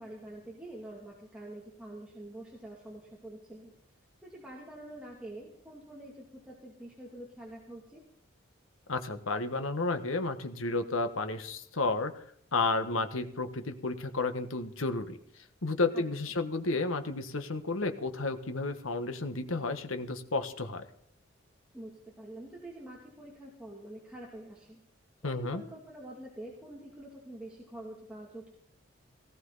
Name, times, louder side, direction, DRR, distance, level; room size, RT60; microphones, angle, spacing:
voice 1, 0.0-3.7 4.2-8.0 15.9-16.0 21.7-24.8 25.2-28.5, right 1 dB, 5° right, -4 dB, 2.5 m, -46 dB
voice 2, 8.9-12.1 12.5-15.2 15.6-20.8 25.2-25.6, left 3 dB, 85° left, 8 dB, 1.4 m, -32 dB
18.0 x 15.5 x 4.1 m, 0.67 s
head